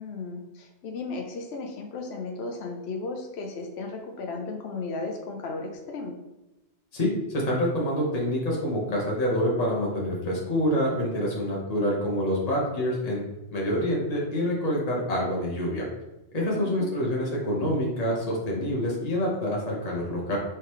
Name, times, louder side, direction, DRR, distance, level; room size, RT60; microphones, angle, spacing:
voice 1, 0.0-6.1 16.4-16.9, left 3 dB, 70° left, 2 dB, 0.9 m, -35 dB
voice 2, 6.9-13.2 13.5-15.9 16.3-20.4, equal, 35° left, -3 dB, 1.2 m, -27 dB
4.4 x 3.8 x 3.1 m, 1.0 s
omnidirectional pair, 1.1 m